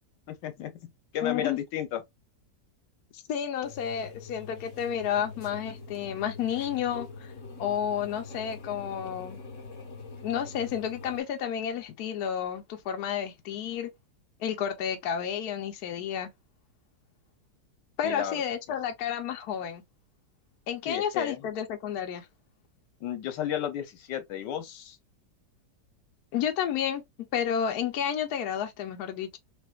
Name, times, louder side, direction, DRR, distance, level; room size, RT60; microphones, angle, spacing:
voice 1, 0.3-0.7 1.1-2.0 18.0-18.3 20.9-21.4 23.0-25.0, left 10 dB, 85° left, 1.4 m, -33 dB
voice 2, 1.2-1.6 3.1-7.3 7.6-9.4 10.2-13.9 14.4-16.3 18.0-19.8 20.7-22.3 26.3-27.0 27.3-29.4, left 8 dB, 65° left, 1.2 m, -31 dB
sound 1, 3.6-11.2, left 4 dB, 50° left, 1.6 m, -44 dB
5.8 x 2.6 x 2.3 m
omnidirectional pair, 1.8 m